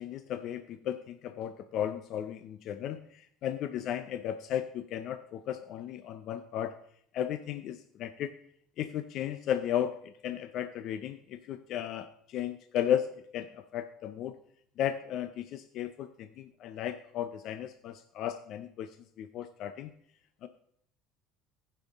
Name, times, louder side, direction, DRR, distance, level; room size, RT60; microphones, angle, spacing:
voice 1, 0.0-6.7 7.1-8.3 8.8-10.0 10.2-13.1 13.3-14.4 14.8-18.9 19.2-19.9 20.4-20.5, left 10 dB, 60° left, 10 dB, 0.5 m, -35 dB
15.5 x 5.7 x 3.6 m, 0.67 s
supercardioid pair, 100°, 0 cm